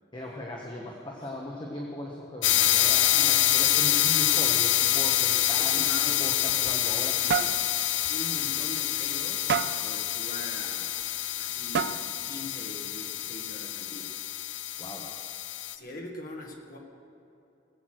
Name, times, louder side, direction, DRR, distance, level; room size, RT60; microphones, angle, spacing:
voice 1, 0.1-7.6 14.8-15.1, left 1 dB, 25° left, -2 dB, 1.4 m, -38 dB
sound 1, 2.4-15.8, left 12 dB, 75° left, 0.5 m, -26 dB
voice 2, 3.1-4.0 5.5-6.3 8.1-11.1 11.4-12.0 12.2-14.1 15.7-16.8, left 2 dB, 50° left, 1 dB, 2.0 m, -42 dB
sound 2, 6.5-7.0 7.3-7.6 8.0-8.2 8.6-8.7 9.5-9.9 11.0-11.1 11.7-12.2, right 7 dB, 60° right, 0.5 m, -29 dB
19.5 x 8.3 x 6.5 m, 2.8 s
head